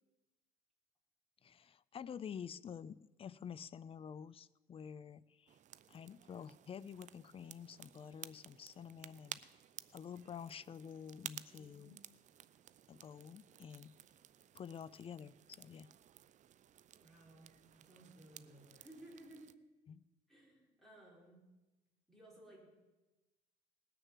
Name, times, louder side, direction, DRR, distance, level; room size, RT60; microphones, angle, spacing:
voice 1, 1.4-5.6 5.9-9.4 9.9-12.0 12.9-13.9 14.5-15.9 19.9-20.0, left 7 dB, 35° left, 20 dB, 0.4 m, -49 dB
sound 1, 5.5-19.5, right 10 dB, 45° right, 0.5 m, -55 dB
voice 2, 11.5-12.2 17.0-19.6 20.3-21.4 22.1-22.7, right 1 dB, ahead, -3 dB, 5.3 m, -59 dB
19.5 x 6.8 x 7.4 m, 1.1 s
cardioid pair, 110°, 17 cm